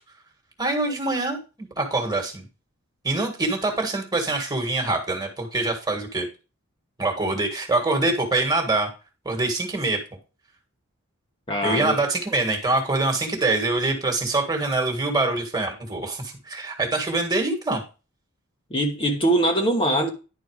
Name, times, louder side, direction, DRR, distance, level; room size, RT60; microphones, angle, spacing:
voice 1, 0.6-2.5 3.0-6.3 7.0-8.9 9.3-10.0 11.6-17.8, right 2 dB, 20° right, 1.8 m, -24 dB
voice 2, 11.5-12.0 18.7-20.1, right 1 dB, 25° left, 1.2 m, -22 dB
10.5 x 4.3 x 4.8 m
head